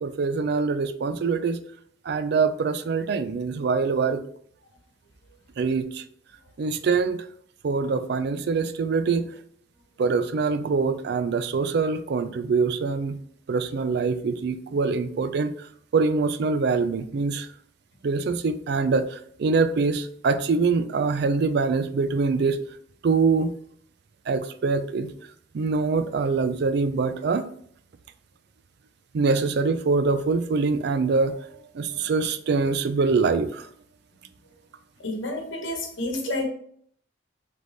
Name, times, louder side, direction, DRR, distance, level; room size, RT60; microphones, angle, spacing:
voice 1, 0.0-1.6 2.1-4.2 5.6-6.0 6.6-7.2 7.6-9.3 10.0-13.2 13.5-15.5 15.9-17.5 18.0-22.6 23.0-23.5 24.3-25.1 25.5-27.5 29.1-31.4 31.7-33.7, right 4 dB, 55° right, 12 dB, 0.3 m, -24 dB
voice 2, 35.0-36.5, left 2 dB, 80° left, 2 dB, 1.1 m, -29 dB
3.9 x 3.3 x 3.4 m, 0.63 s
head